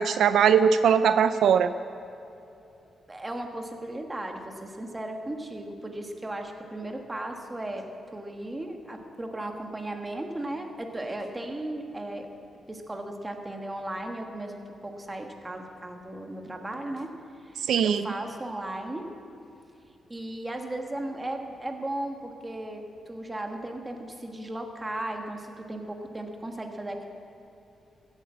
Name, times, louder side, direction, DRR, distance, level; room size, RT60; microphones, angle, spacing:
voice 1, 0.0-1.7 17.6-18.1, right 7 dB, 75° right, 11 dB, 0.4 m, -20 dB
voice 2, 3.1-12.3 12.7-17.1 17.4-19.1 20.1-27.1, right 1 dB, 15° right, 3 dB, 1.4 m, -36 dB
16.0 x 8.2 x 7.4 m, 2.9 s
cardioid pair, 120°, 0 cm